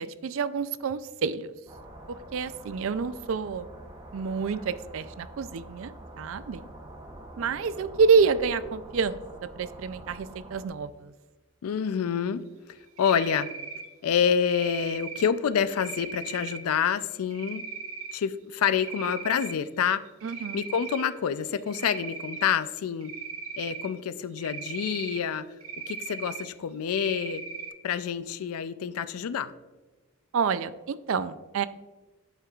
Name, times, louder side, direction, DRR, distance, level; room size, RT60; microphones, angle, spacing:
voice 1, 0.0-1.5 2.1-3.7 4.1-6.6 7.4-9.2 9.6-11.1 20.2-20.6 30.3-31.7, right 5 dB, 60° right, 14 dB, 0.4 m, -28 dB
sound 1, 1.7-10.7, right 1 dB, 15° right, 0.8 m, -46 dB
voice 2, 11.6-12.4 13.0-13.5 14.0-17.6 18.1-20.0 20.5-23.1 23.6-25.5 25.9-27.4 27.8-29.5, left 7 dB, 80° left, 14 dB, 0.4 m, -27 dB
Cricket, 13.0-13.9 14.4-15.3 15.7-16.6 17.3-18.1 18.6-19.5 19.9-21.1 21.7-22.5 23.0-23.9 24.4-25.2 25.6-26.4 26.9-27.7, right 6 dB, 85° right, 1.1 m, -38 dB
11.0 x 4.5 x 2.4 m, 1.2 s
head